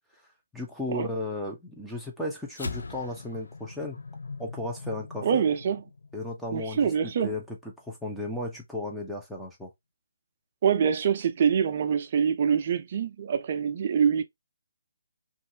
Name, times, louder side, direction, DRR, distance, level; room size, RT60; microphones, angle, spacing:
voice 1, 0.5-4.0 4.4-5.4 6.1-7.6 7.8-9.7, left 2 dB, ahead, 0.7 m, -35 dB
sound 1, 2.5-7.1, left 3 dB, 85° left, 0.5 m, -41 dB
voice 2, 5.2-5.8 6.5-7.3 10.6-14.2, right 7 dB, 45° right, 0.5 m, -25 dB
2.6 x 2.5 x 2.7 m
hypercardioid pair, 155°, 0 cm